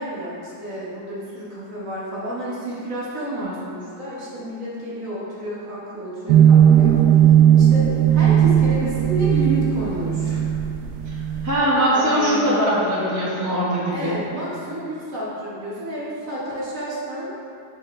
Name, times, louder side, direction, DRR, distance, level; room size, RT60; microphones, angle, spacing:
voice 1, 0.0-10.5 11.3-11.5 11.9-12.6 13.9-17.3, right 1 dB, 50° right, -8 dB, 1.9 m, -30 dB
sound 1, 6.3-11.6, right 9 dB, 85° right, 1.2 m, -16 dB
voice 2, 11.4-14.1, equal, 15° right, -7 dB, 0.9 m, -21 dB
7.7 x 5.5 x 3.2 m, 2.5 s
omnidirectional pair, 1.8 m